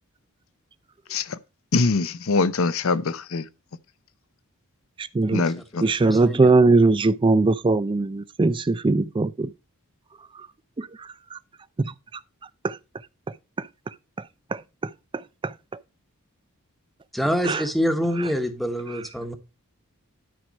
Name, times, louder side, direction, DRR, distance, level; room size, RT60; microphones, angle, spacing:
voice 1, 1.7-3.4 5.3-5.8, left 3 dB, 65° left, 0.6 m, -23 dB
voice 2, 5.0-5.4 5.8-9.5 10.8-10.9 11.3-11.4 11.8-11.9 12.6-12.8 13.6-13.7 14.5-15.5 17.4-17.6 18.2-18.3, right 3 dB, 20° right, 0.4 m, -21 dB
voice 3, 6.0-6.5 17.1-19.3, equal, ahead, 1.1 m, -25 dB
10.5 x 4.7 x 5.2 m
head